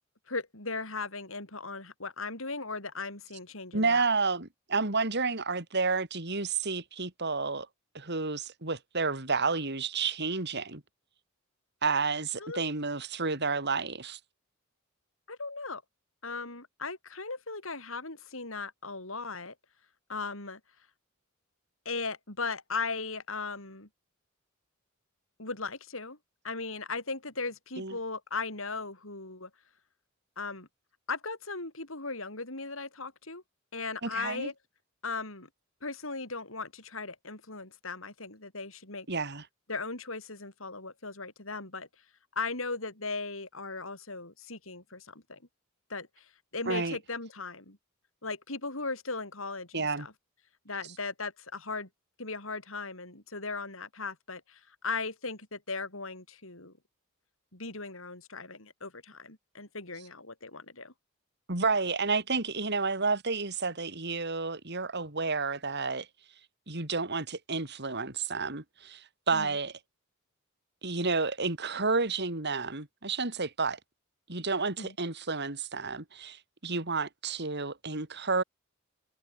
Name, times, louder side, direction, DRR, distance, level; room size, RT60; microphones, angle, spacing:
voice 1, 0.3-4.0 12.4-12.7 15.3-15.8 16.2-19.5 20.1-20.6 21.8-23.9 25.4-26.2 26.4-29.5 30.4-30.7 31.1-33.4 33.7-34.5 35.0-35.5 35.8-39.1 39.7-41.9 42.4-45.4 45.9-47.8 48.2-50.1 50.6-51.9 52.2-56.7 57.5-60.9 69.3-69.6 74.8-74.9, left 4 dB, 70° left, 6.2 m, -37 dB
voice 2, 3.7-7.7 7.9-10.8 11.8-14.2 27.8-28.0 34.0-34.5 39.1-39.4 46.7-47.0 49.7-50.1 61.5-66.1 66.7-69.7 70.8-73.8 74.3-78.4, right 4 dB, 55° right, 3.6 m, -30 dB
head